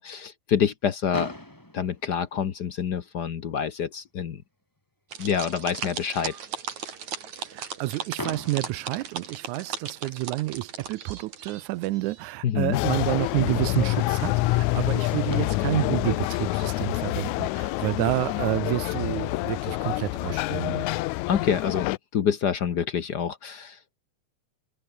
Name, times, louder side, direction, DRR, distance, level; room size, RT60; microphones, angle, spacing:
voice 1, 0.0-1.3 1.7-4.4 5.2-6.3 12.4-12.8 21.3-23.8, left 8 dB, 65° left, 1.0 m, -27 dB
Fireworks, 1.1-3.1 4.0-4.1 4.2-4.5 4.8-4.9 8.2-10.0 11.7-11.8 14.8-14.9 15.3-17.6, left 1 dB, 5° left, 2.9 m, -41 dB
sound 1, 5.1-12.3, right 7 dB, 70° right, 4.2 m, -37 dB
voice 2, 7.5-20.9, right 19 dB, 90° right, 2.1 m, -29 dB
sound 2, 12.7-22.0, left 19 dB, 85° left, 2.0 m, -27 dB
omnidirectional pair, 3.4 m